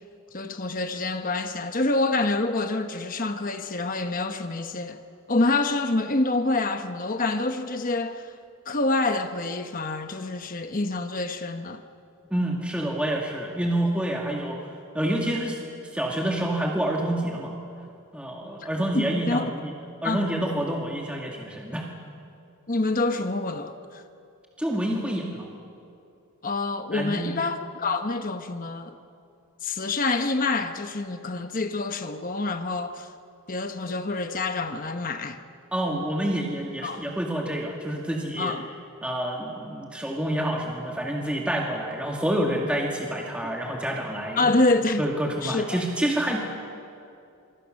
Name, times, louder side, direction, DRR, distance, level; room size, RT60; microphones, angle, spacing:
voice 1, 0.3-5.0 5.3-8.3 8.7-11.8 18.9-19.5 20.0-20.2 22.7-24.0 26.4-28.9 29.6-33.1 33.5-35.4 36.8-37.0 38.4-38.7 44.4-45.0 45.4-45.8, left 2 dB, 40° left, 1.0 m, -27 dB
voice 2, 12.3-14.7 14.9-15.6 15.9-17.5 18.1-19.7 20.0-21.9 24.6-25.5 26.9-27.4 35.7-38.6 39.0-44.4 45.0-46.4, right 1 dB, 5° right, 1.9 m, -28 dB
27.0 x 24.0 x 6.5 m
head